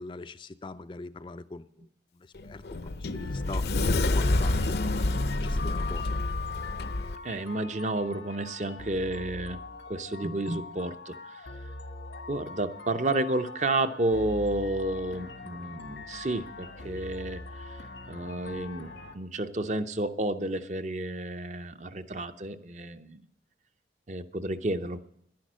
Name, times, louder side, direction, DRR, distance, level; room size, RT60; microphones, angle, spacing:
voice 1, 0.0-1.9 2.1-3.7 4.0-6.1, left 3 dB, 25° left, 11 dB, 0.4 m, -42 dB
Sliding door, 2.3-7.2, left 2 dB, 65° left, 0.6 m, -28 dB
sound 1, 3.1-19.2, left 2 dB, 90° left, 1.5 m, -43 dB
voice 2, 7.2-9.6 9.9-11.5 12.3-23.2 24.1-25.0, right 2 dB, 40° right, 10 dB, 0.6 m, -31 dB
11.0 x 10.5 x 6.3 m, 0.75 s
head